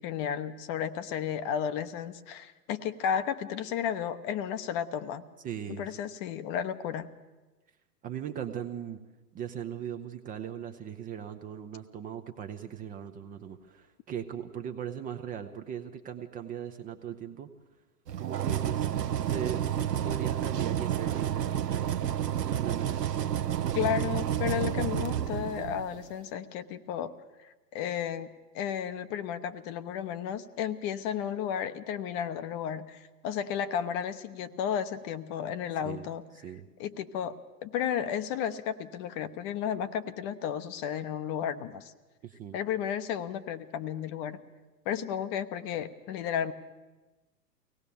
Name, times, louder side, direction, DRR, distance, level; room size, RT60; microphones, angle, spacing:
voice 1, 0.0-5.2 5.7-7.1 23.7-27.1 27.4-36.2 36.8-41.9 42.5-44.4 44.9-46.5, left 9 dB, 30° left, 11 dB, 0.9 m, -33 dB
voice 2, 5.4-5.9 8.0-9.0 9.3-17.5 18.2-19.7 20.0-21.9 22.5-22.9 35.8-36.1 36.4-36.7 42.2-42.6, right 9 dB, 15° right, 7 dB, 0.7 m, -39 dB
sound 1, 18.1-26.0, right 10 dB, 75° right, 1.0 m, -30 dB
23.5 x 18.0 x 7.0 m, 1.2 s
figure-of-eight pair, 110°, 49 cm